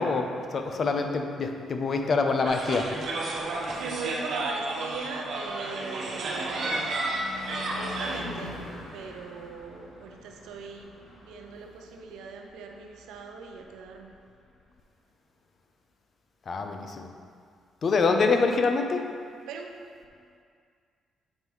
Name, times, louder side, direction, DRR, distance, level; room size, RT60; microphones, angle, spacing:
voice 1, 0.0-2.9 16.5-17.1 17.8-19.0, left 4 dB, 50° left, 5 dB, 0.6 m, -25 dB
sound 1, 2.5-8.2, right 2 dB, 60° right, 1.0 m, -32 dB
voice 2, 3.7-7.0 7.5-8.6 8.9-14.1 19.5-19.7, right 5 dB, 90° right, 3 dB, 0.6 m, -40 dB
Car passing by / Truck / Engine, 4.1-14.3, left 2 dB, 85° left, 1.4 m, -46 dB
7.3 x 5.2 x 3.1 m, 2.2 s
cardioid pair, 90°, 0 cm